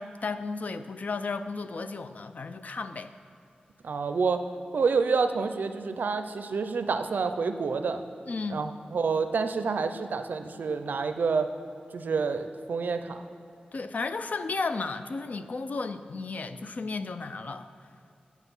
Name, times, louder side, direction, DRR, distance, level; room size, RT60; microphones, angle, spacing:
voice 1, 0.0-3.1 8.3-8.6 13.7-17.7, left 4 dB, 60° left, 10 dB, 0.4 m, -34 dB
voice 2, 3.8-4.5 4.7-8.0 8.5-11.5 11.9-13.2, right 5 dB, 80° right, 8 dB, 0.5 m, -28 dB
8.1 x 7.2 x 5.5 m, 2.6 s
wide cardioid pair, 90°, 3 cm